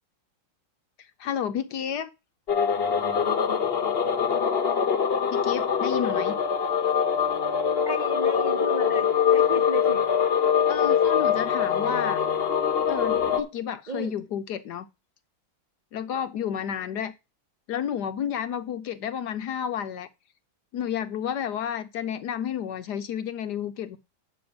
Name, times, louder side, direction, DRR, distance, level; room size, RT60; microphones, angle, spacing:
voice 1, 1.2-2.1 5.3-6.4 10.7-12.2 12.9-14.9 15.9-17.1 17.7-20.1 20.7-24.0, left 9 dB, 70° left, 1.0 m, -31 dB
sound 1, 2.5-13.4, left 7 dB, 40° left, 1.0 m, -23 dB
voice 2, 7.8-10.0 13.9-14.1, right 2 dB, 75° right, 0.4 m, -34 dB
9.1 x 6.9 x 5.2 m
omnidirectional pair, 2.2 m